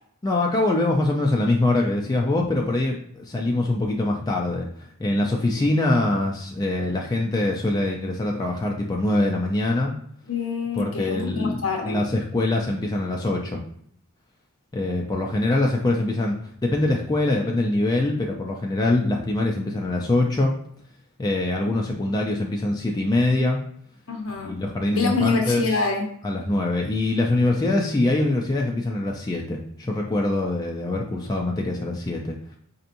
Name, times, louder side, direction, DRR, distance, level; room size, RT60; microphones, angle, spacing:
voice 1, 0.2-4.7 5.0-9.9 10.8-13.6 14.7-16.4 16.6-20.5 21.2-23.6 24.4-25.6 26.2-32.3, left 2 dB, 20° left, 0 dB, 0.3 m, -23 dB
voice 2, 10.3-12.0 24.1-24.5 24.9-26.1, left 4 dB, 65° left, 2 dB, 0.8 m, -26 dB
4.4 x 2.7 x 2.5 m, 0.65 s
head